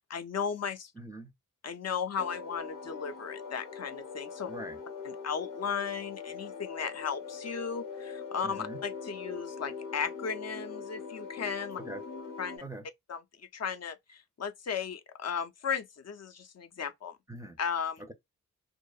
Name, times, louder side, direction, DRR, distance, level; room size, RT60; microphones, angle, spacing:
voice 1, 0.1-0.9 1.6-4.5 5.0-11.8 12.4-12.6 13.1-13.2 13.5-17.2 17.6-18.0, left 6 dB, 50° left, 0.5 m, -35 dB
voice 2, 1.0-1.3 4.5-4.8 8.4-8.8 11.8-12.0 12.6-12.9 17.3-17.6 18.0-18.1, right 2 dB, 10° right, 0.5 m, -43 dB
sound 1, 2.2-12.6, left 5 dB, 85° left, 0.9 m, -42 dB
2.8 x 2.0 x 2.3 m
cardioid pair, 70°, 32 cm